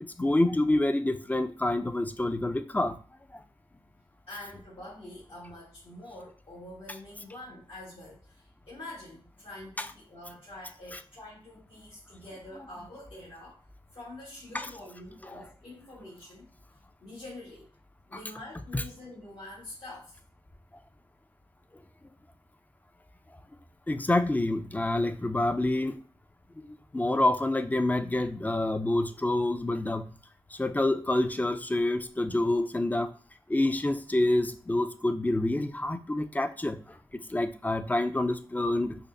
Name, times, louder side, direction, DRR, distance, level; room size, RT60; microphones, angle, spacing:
voice 1, 0.0-3.0 3.3-3.4 9.8-9.9 10.9-11.0 14.5-14.7 18.7-18.8 23.9-26.0 26.6-26.7 26.9-30.0 30.5-33.1 33.5-37.0 37.3-39.0, left 1 dB, 15° left, 9 dB, 0.3 m, -27 dB
voice 2, 4.3-13.6 13.9-16.5 17.0-17.7 18.1-20.2, left 1 dB, 75° left, -8 dB, 1.3 m, -46 dB
5.1 x 2.0 x 2.5 m, 0.39 s
wide cardioid pair, 75°, 10 cm